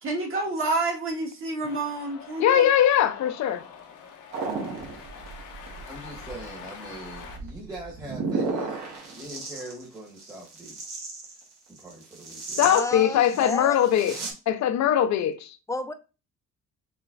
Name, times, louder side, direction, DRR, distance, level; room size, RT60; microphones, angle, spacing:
voice 1, 0.0-2.7, right 2 dB, 45° right, 1.7 m, -29 dB
Cheering, 1.6-7.4, left 6 dB, 85° left, 0.9 m, -45 dB
voice 2, 2.4-3.6 12.6-15.6, left 10 dB, 65° left, 0.6 m, -21 dB
sound 1, 4.3-14.3, right 3 dB, 60° right, 1.5 m, -35 dB
voice 3, 5.8-11.0 11.7-12.6, right 1 dB, 15° right, 1.2 m, -42 dB
voice 4, 12.6-13.8 15.7-15.9, left 2 dB, 10° left, 0.5 m, -31 dB
5.6 x 2.9 x 2.5 m
cardioid pair, 90°, 30 cm